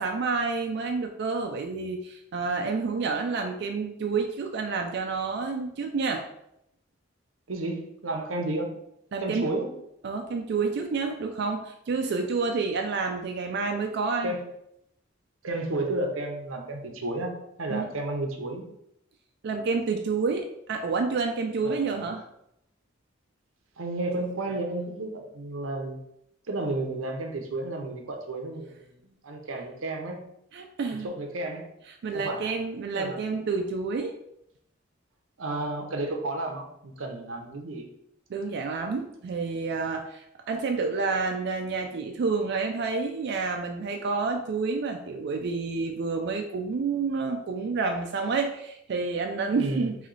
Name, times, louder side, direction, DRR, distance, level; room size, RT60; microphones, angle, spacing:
voice 1, 0.0-6.3 9.1-9.5 10.0-14.4 17.7-17.9 19.4-22.2 30.5-31.1 32.0-34.1 38.3-50.0, right 4 dB, 55° right, 4 dB, 0.3 m, -29 dB
voice 2, 7.5-8.7 9.2-9.7 14.2-14.4 15.4-18.7 21.6-22.1 23.8-26.0 26.5-30.2 31.0-31.7 32.1-32.5 32.9-33.4 35.4-37.9 49.4-49.9, right 2 dB, 85° right, 4 dB, 0.7 m, -32 dB
3.1 x 3.0 x 3.9 m, 0.77 s
head